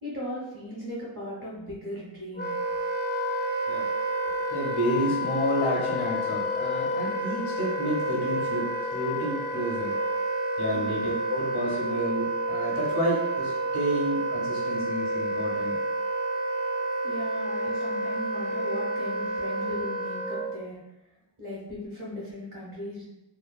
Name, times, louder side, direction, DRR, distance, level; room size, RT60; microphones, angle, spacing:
voice 1, 0.0-2.5 10.7-10.9 17.0-20.7 21.4-23.0, left 1 dB, 40° right, -11 dB, 1.1 m, -37 dB
Wind instrument woodwind instrument, 2.4-20.6, right 1 dB, 25° left, 0.4 m, -29 dB
voice 2, 4.5-9.9 10.6-11.0 11.3-15.8, equal, 80° left, -4 dB, 1.0 m, -30 dB
3.0 x 2.2 x 2.3 m, 0.94 s
wide cardioid pair, 80°, 47 cm